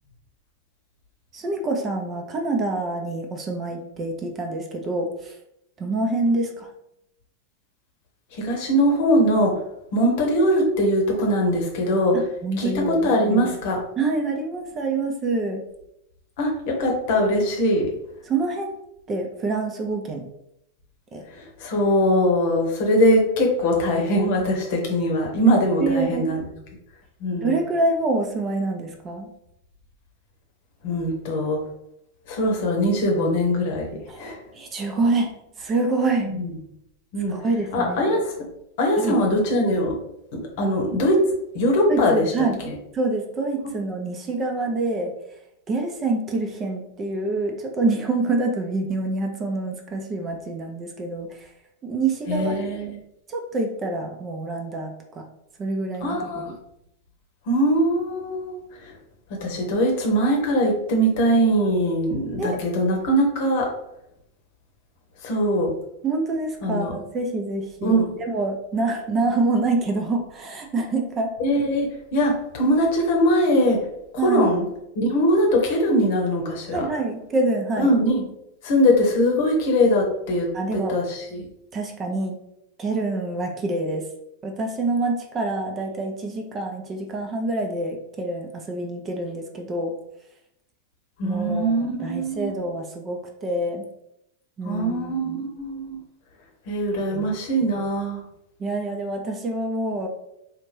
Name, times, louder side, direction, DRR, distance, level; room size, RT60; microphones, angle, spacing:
voice 1, 1.3-5.4 5.8-6.7 12.1-13.1 14.0-15.6 18.3-18.7 19.1-20.3 21.1-21.2 25.8-26.3 27.4-29.3 34.1-36.3 37.3-38.0 39.0-39.2 41.9-45.1 45.7-51.5 51.8-52.9 53.3-55.3 55.6-56.5 62.4-62.6 66.0-71.3 74.2-74.5 75.8-75.9 76.7-78.0 80.5-81.0 81.7-82.4 82.8-84.0 84.4-89.9 91.2-91.7 92.0-93.8 94.6-95.4 97.1-97.2 98.6-100.1, right 2 dB, 25° right, 3 dB, 0.7 m, -26 dB
voice 2, 8.3-9.6 9.9-12.2 12.6-13.8 16.4-17.9 21.3-26.4 27.2-27.5 30.8-31.6 32.3-34.4 36.2-36.5 37.1-37.3 37.7-38.3 38.8-40.0 40.3-41.2 41.5-42.7 52.3-52.9 56.0-56.5 57.5-58.9 59.3-63.7 65.2-65.7 66.6-66.9 67.8-68.1 71.4-73.8 74.1-74.7 75.0-76.8 77.8-78.2 78.6-81.5 91.2-92.6 94.6-96.0 96.7-98.2, equal, 50° left, 1 dB, 1.0 m, -21 dB
4.2 x 2.6 x 3.2 m, 0.79 s
figure-of-eight pair, 90°, 0 cm